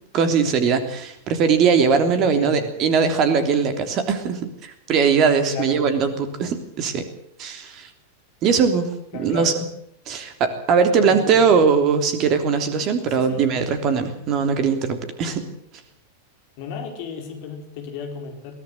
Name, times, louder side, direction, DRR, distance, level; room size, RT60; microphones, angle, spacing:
voice 1, 0.1-7.1 7.4-7.9 8.4-8.9 9.2-9.5 10.1-15.4, right 6 dB, 35° right, 8 dB, 3.3 m, -20 dB
voice 2, 2.3-2.7 5.5-5.8 9.1-9.6 11.0-11.6 13.1-13.5 16.6-18.5, left 6 dB, 45° left, 4 dB, 4.6 m, -34 dB
22.0 x 16.5 x 7.9 m, 0.71 s
figure-of-eight pair, 90°, 0 cm